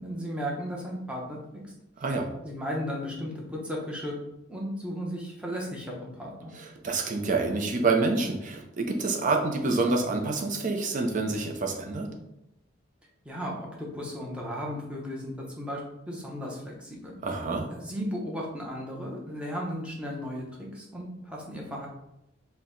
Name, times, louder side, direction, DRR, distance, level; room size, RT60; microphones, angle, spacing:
voice 1, 0.0-1.4 2.4-4.2 4.5-6.5 13.2-15.8 16.1-17.1 17.7-21.9, equal, 5° right, -2 dB, 0.8 m, -35 dB
voice 2, 6.5-12.1 17.2-17.7, right 3 dB, 40° right, 2 dB, 0.6 m, -27 dB
4.5 x 2.2 x 3.8 m, 0.86 s
head